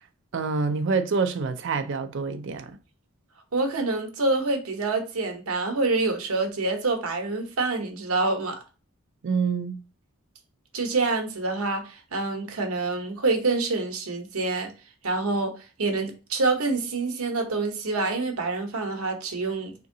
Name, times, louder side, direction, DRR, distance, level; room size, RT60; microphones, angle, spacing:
voice 1, 0.3-2.7 9.2-9.8, right 4 dB, 60° right, 0.4 m, -26 dB
voice 2, 3.5-8.6 10.7-14.7 15.0-15.5 15.8-19.7, right 3 dB, 85° right, 0.8 m, -26 dB
3.6 x 2.9 x 2.6 m
head